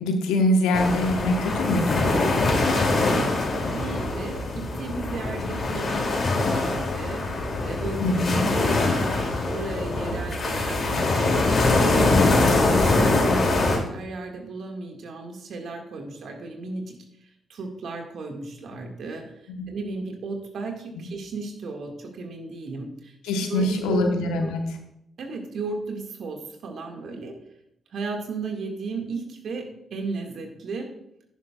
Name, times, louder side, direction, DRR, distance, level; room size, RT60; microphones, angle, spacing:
voice 1, 0.0-2.1 8.0-8.4 19.6-19.7 21.0-21.1 23.2-24.6, left 1 dB, 80° left, 4 dB, 1.1 m, -24 dB
sound 1, 0.7-13.8, left 2 dB, 50° left, 2.7 m, -23 dB
voice 2, 3.0-7.2 7.6-13.6 13.9-16.9 17.2-19.2 19.7-23.1 23.5-24.5 25.2-27.4 27.9-29.6 29.9-30.9, right 3 dB, 65° right, 3 dB, 1.9 m, -35 dB
11.0 x 10.5 x 2.4 m, 0.76 s
hypercardioid pair, 40°, 0 cm